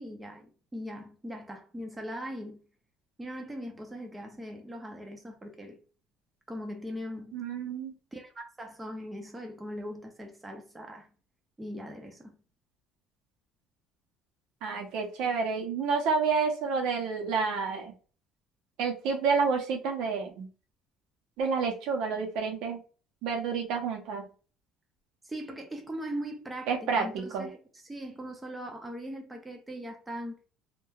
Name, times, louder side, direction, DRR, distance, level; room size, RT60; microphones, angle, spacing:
voice 1, 0.0-2.6 3.2-5.8 6.5-7.4 8.1-11.1 11.6-12.4 25.2-27.6 27.8-30.4, equal, 10° right, 0.5 m, -40 dB
voice 2, 7.3-7.9 14.6-17.9 18.8-20.5 21.4-22.8 23.2-24.3 26.7-27.5, right 5 dB, 70° right, 0.7 m, -29 dB
2.8 x 2.2 x 2.3 m
cardioid pair, 125°, 0 cm